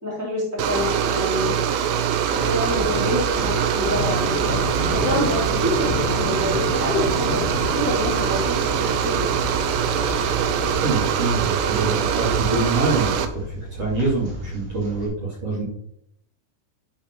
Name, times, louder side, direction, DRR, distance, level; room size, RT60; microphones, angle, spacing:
voice 1, 0.0-1.5 2.3-9.5, left 1 dB, 5° right, -5 dB, 1.6 m, -27 dB
sound 1, 0.6-13.3, right 8 dB, 80° right, 2.6 m, -23 dB
sound 2, 2.1-15.1, right 1 dB, 60° right, 4.7 m, -35 dB
sound 3, 3.8-11.2, left 11 dB, 85° left, 3.1 m, -32 dB
voice 2, 10.8-15.6, right 2 dB, 40° right, -7 dB, 2.7 m, -25 dB
11.5 x 4.8 x 4.6 m, 0.73 s
omnidirectional pair, 5.7 m